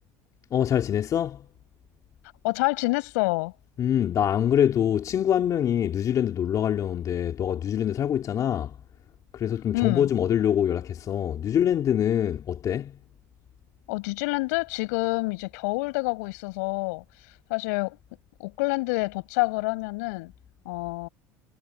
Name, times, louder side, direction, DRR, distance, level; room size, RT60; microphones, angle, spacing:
voice 1, 0.5-1.5 3.8-8.8 9.3-13.0, left 9 dB, 40° left, 2.6 m, -24 dB
voice 2, 2.4-3.5 9.7-10.1 13.9-17.0 17.5-18.0 18.4-20.3 20.7-21.1, left 25 dB, 80° left, 5.3 m, -27 dB
supercardioid pair, 105°, 9 cm